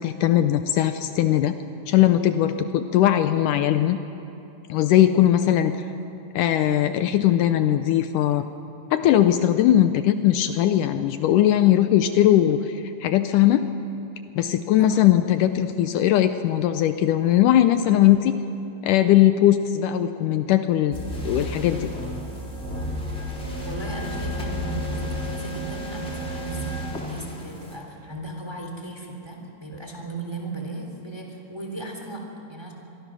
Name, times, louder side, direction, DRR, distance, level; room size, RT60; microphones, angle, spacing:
voice 1, 0.0-1.5 1.9-4.0 4.7-5.8 6.3-8.5 8.9-13.6 14.4-18.3 18.8-21.0 21.2-21.9, left 12 dB, 75° left, 9 dB, 2.1 m, -19 dB
voice 2, 17.7-18.1 23.6-32.7, right 2 dB, 10° right, 1 dB, 2.6 m, -36 dB
sound 1, 20.9-27.8, equal, 20° left, 3.3 m, -32 dB
25.5 x 23.5 x 6.2 m, 2.9 s
omnidirectional pair, 3.9 m